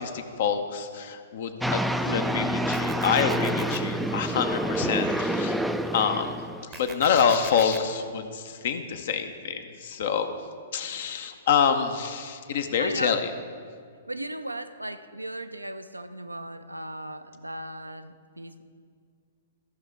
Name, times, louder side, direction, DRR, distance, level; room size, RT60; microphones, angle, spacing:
voice 1, 0.0-5.6 5.9-6.4 6.6-10.3 10.7-13.3, left 7 dB, 55° left, 8 dB, 0.7 m, -27 dB
sound 1, 1.6-6.6, right 1 dB, ahead, 0.3 m, -27 dB
sound 2, 2.7-3.8 6.7-7.8, right 6 dB, 20° right, 0.7 m, -41 dB
voice 2, 12.8-13.2 14.1-18.6, right 1 dB, 90° right, 10 dB, 0.4 m, -36 dB
13.5 x 5.7 x 4.6 m, 2.1 s
figure-of-eight pair, 110°, 0 cm